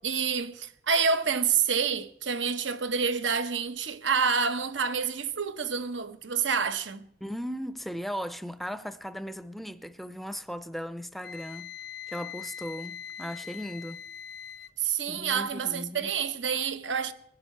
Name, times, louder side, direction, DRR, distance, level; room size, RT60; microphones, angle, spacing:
voice 1, 0.0-7.1 14.8-17.1, right 6 dB, 85° right, 1.0 m, -28 dB
voice 2, 7.2-11.7 12.1-14.0 15.1-16.1, equal, ahead, 0.5 m, -37 dB
Wind instrument woodwind instrument, 11.2-14.7, left 8 dB, 60° left, 0.5 m, -42 dB
21.5 x 12.0 x 4.5 m
head